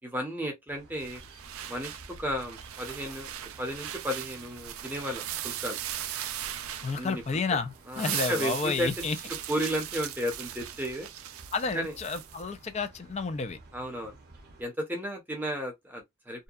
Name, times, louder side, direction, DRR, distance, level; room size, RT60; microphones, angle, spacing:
voice 1, 0.0-1.2 1.7-3.3 3.6-5.8 6.9-7.2 7.9-9.2 9.5-11.1 11.7-11.9 13.7-14.2 14.6-16.4, equal, 10° right, 0.6 m, -33 dB
sound 1, 0.7-14.7, right 2 dB, 45° right, 0.7 m, -53 dB
sound 2, 1.0-7.4 7.7-12.4, right 11 dB, 70° right, 0.4 m, -38 dB
voice 2, 6.8-9.2 11.5-13.6, left 4 dB, 30° left, 0.3 m, -31 dB
2.6 x 2.2 x 2.3 m
head